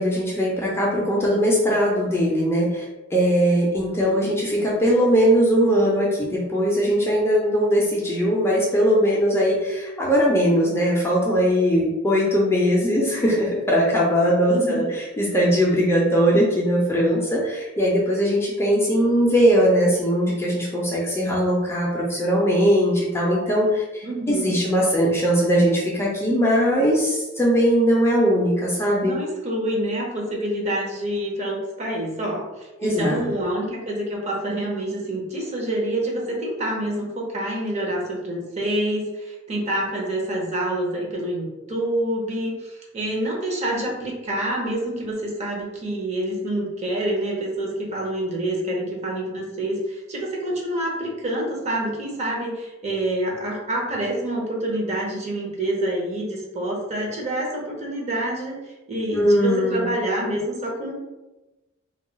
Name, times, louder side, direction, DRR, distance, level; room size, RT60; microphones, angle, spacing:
voice 1, 0.0-2.8 3.1-14.8 15.2-29.2 32.8-33.4 59.1-59.9, equal, 10° left, -4 dB, 0.5 m, -20 dB
voice 2, 14.5-15.0 24.0-24.6 29.0-60.9, right 1 dB, 35° right, -2 dB, 0.7 m, -27 dB
2.3 x 2.3 x 3.8 m, 1.1 s
head